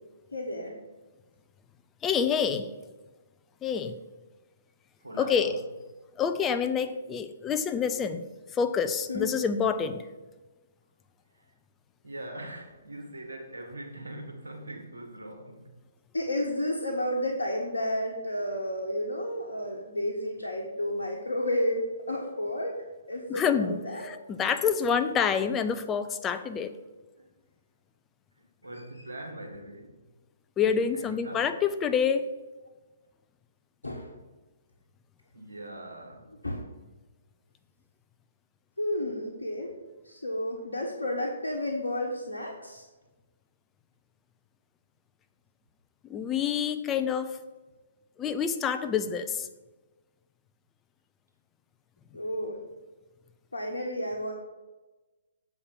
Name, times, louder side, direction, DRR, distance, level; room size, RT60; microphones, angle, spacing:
voice 1, 0.3-0.7 9.1-9.3 16.1-22.8 23.1-24.1 28.7-28.8 33.8-34.1 36.4-36.7 38.8-39.7 40.0-42.8 52.1-52.6 53.5-54.3, left 1 dB, 80° left, -1 dB, 1.2 m, -31 dB
voice 2, 2.0-2.7 3.6-4.0 5.2-5.6 6.2-8.2 8.5-10.1 23.3-26.7 30.6-32.3 46.1-47.4 48.2-49.5, left 7 dB, 15° left, 8 dB, 0.5 m, -27 dB
voice 3, 5.0-5.5 11.3-11.4 12.0-15.7 27.2-27.3 28.6-30.0 30.9-31.5 35.3-36.3, right 1 dB, 70° right, 1 dB, 2.3 m, -42 dB
7.2 x 4.8 x 6.3 m, 1.2 s
figure-of-eight pair, 125°, 0 cm